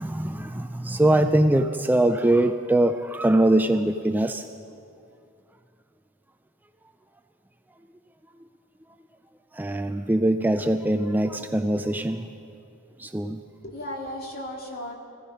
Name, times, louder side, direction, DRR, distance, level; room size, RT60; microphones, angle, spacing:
voice 1, 0.0-4.4 9.5-12.3 13.0-13.4, right 1 dB, 10° right, 8 dB, 0.3 m, -22 dB
voice 2, 13.2-14.9, left 1 dB, 50° left, 0 dB, 2.2 m, -36 dB
18.0 x 15.5 x 5.2 m, 2.5 s
head